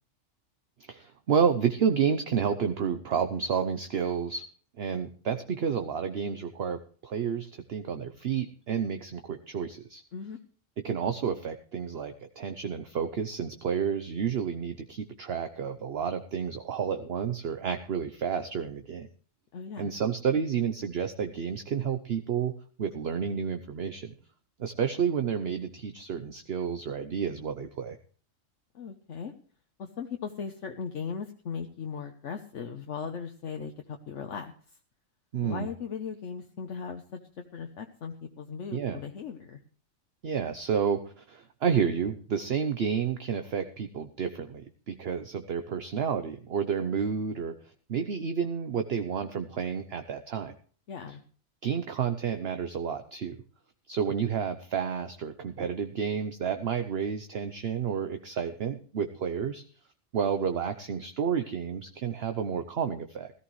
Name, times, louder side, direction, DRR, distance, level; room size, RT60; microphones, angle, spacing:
voice 1, 0.9-4.4 4.8-10.0 10.8-19.1 19.8-22.5 22.8-24.1 24.6-28.0 35.3-35.7 38.7-39.0 40.2-47.5 47.9-50.5 51.6-53.3 53.9-59.6 60.1-63.3, right 7 dB, 55° right, 8 dB, 1.0 m, -30 dB
voice 2, 19.5-19.9 28.7-29.3 29.8-34.5 35.4-37.2 37.5-39.6 50.9-51.2, left 6 dB, 65° left, 5 dB, 1.2 m, -38 dB
17.0 x 14.0 x 3.1 m, 0.43 s
omnidirectional pair, 1.4 m